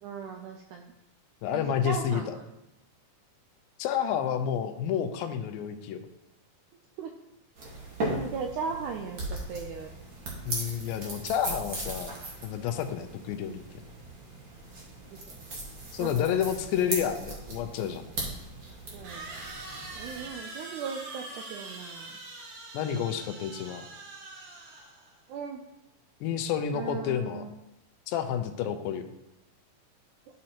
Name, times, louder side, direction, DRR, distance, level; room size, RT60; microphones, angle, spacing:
voice 1, 0.0-0.9 1.5-2.5 7.0-7.1 8.1-9.9 15.1-15.4 16.0-16.4 18.9-19.3 20.0-22.2 25.3-25.6 26.7-27.5, right 6 dB, 85° right, 3 dB, 1.7 m, -38 dB
voice 2, 1.4-2.4 3.8-6.1 10.4-12.1 12.4-13.6 15.9-18.0 22.7-23.8 26.2-27.4 28.1-29.0, left 9 dB, 85° left, 8 dB, 2.4 m, -30 dB
sound 1, 7.6-20.3, right 2 dB, 45° right, 1.7 m, -38 dB
sound 2, 19.0-25.2, right 2 dB, 65° right, 2.3 m, -43 dB
12.0 x 5.2 x 2.9 m, 0.91 s
omnidirectional pair, 4.1 m